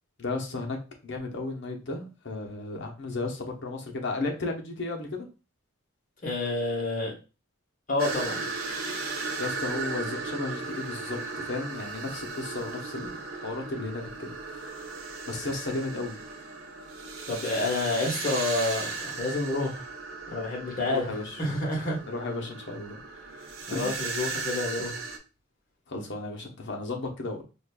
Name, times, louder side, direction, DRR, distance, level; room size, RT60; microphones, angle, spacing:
voice 1, 0.2-0.8 1.0-5.3 9.4-14.7 15.3-16.2 20.8-21.4 22.1-23.0 23.7-24.0 25.9-27.4, left 2 dB, 60° left, 2 dB, 0.8 m, -34 dB
voice 2, 6.2-7.1 7.9-8.4 17.3-19.9 20.3-21.1 21.4-22.0 23.4-25.0, left 2 dB, 40° left, -2 dB, 1.2 m, -29 dB
sound 1, 8.0-25.2, right 4 dB, 80° right, 0.6 m, -36 dB
5.0 x 2.4 x 2.2 m, 0.32 s
head